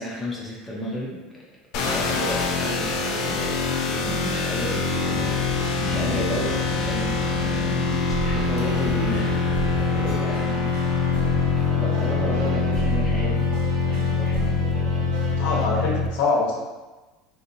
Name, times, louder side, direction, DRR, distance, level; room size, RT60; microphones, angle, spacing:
voice 1, 0.0-1.5 1.8-5.5 5.8-9.3 9.8-10.8 11.5-13.5 13.9-15.1 15.7-16.1, equal, ahead, -6 dB, 0.5 m, -33 dB
sound 1, 1.7-16.1, left 4 dB, 50° left, 0.4 m, -24 dB
sound 2, 5.1-10.2, right 3 dB, 45° right, 0.6 m, -35 dB
sound 3, 8.1-15.7, right 4 dB, 75° right, 0.8 m, -34 dB
voice 2, 15.4-16.6, left 3 dB, 75° left, -3 dB, 0.9 m, -24 dB
3.6 x 2.8 x 2.6 m, 1.2 s
cardioid pair, 170°, 0 cm